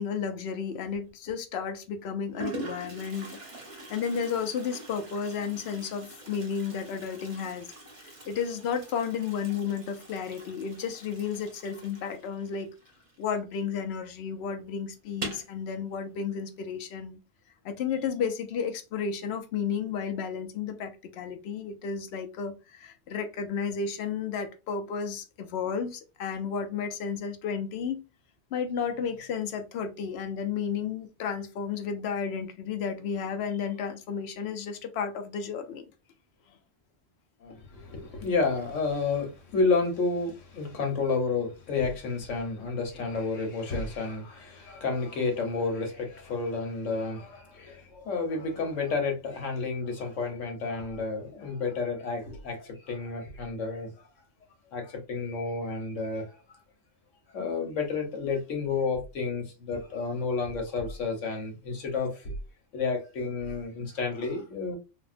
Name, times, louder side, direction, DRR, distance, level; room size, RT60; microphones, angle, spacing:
voice 1, 0.0-3.3 3.9-7.7 8.0-12.7 13.2-17.2 17.6-28.0 28.5-35.9, left 6 dB, 65° left, 0.8 m, -32 dB
Toilet flush, 0.9-1.3 2.0-2.1 2.3-13.6 13.9-14.0 14.3-14.4 15.1-15.6, right 1 dB, 35° right, 0.6 m, -43 dB
voice 2, 37.4-53.9 54.7-56.4 57.3-62.3 62.7-64.8, left 4 dB, 90° left, 1.2 m, -31 dB
3.4 x 2.2 x 2.4 m
omnidirectional pair, 1.2 m